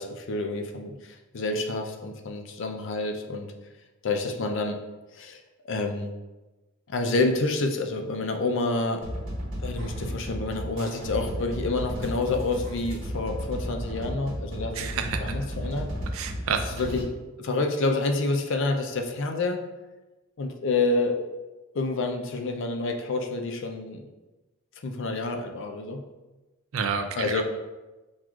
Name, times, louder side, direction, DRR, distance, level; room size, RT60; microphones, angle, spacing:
voice 1, 0.0-3.5 4.0-4.8 5.1-6.1 6.9-9.0 9.6-14.9 15.2-15.9 16.7-17.1 17.4-19.6 20.4-21.2 21.7-24.0 24.8-26.0 27.2-27.4, left 3 dB, 65° left, 4 dB, 0.5 m, -28 dB
sound 1, 9.0-17.0, equal, 65° right, 1.4 m, -34 dB
voice 2, 14.7-15.2 16.1-16.6 26.7-27.4, right 6 dB, 85° right, 7 dB, 0.4 m, -29 dB
5.9 x 2.4 x 2.4 m, 1.1 s
head